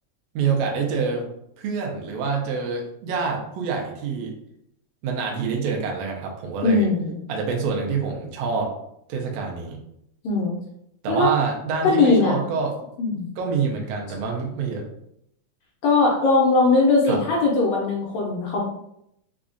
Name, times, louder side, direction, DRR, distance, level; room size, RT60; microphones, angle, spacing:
voice 1, 0.3-1.3 1.6-4.4 5.0-6.9 7.3-8.7 9.1-9.8 11.0-12.7 13.4-14.8 17.0-17.2, right 5 dB, 75° right, 1 dB, 1.6 m, -26 dB
voice 2, 6.6-7.2 10.2-10.6 11.1-11.3 11.8-12.4 13.0-13.3 15.8-18.6, left 3 dB, 75° left, -2 dB, 1.6 m, -20 dB
4.9 x 2.3 x 2.5 m, 0.75 s
omnidirectional pair, 3.5 m